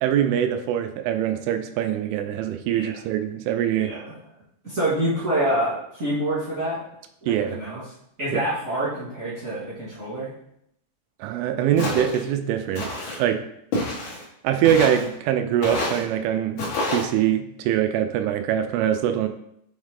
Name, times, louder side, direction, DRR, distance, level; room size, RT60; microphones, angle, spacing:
voice 1, 0.0-3.9 7.3-7.6 8.3-8.4 11.2-12.9 13.2-13.4 14.4-16.6 16.9-19.3, right 10 dB, 85° right, 7 dB, 2.9 m, -23 dB
voice 2, 3.8-4.1 4.6-6.8 7.2-7.8 8.2-10.3, right 1 dB, 45° right, -11 dB, 0.9 m, -26 dB
Walk footsteps, 11.8-12.2 12.7-13.2 13.7-14.2 14.6-15.1 15.6-16.0 16.6-17.0, left 2 dB, 80° left, 1.7 m, -28 dB
7.3 x 3.6 x 3.7 m, 0.74 s
omnidirectional pair, 5.7 m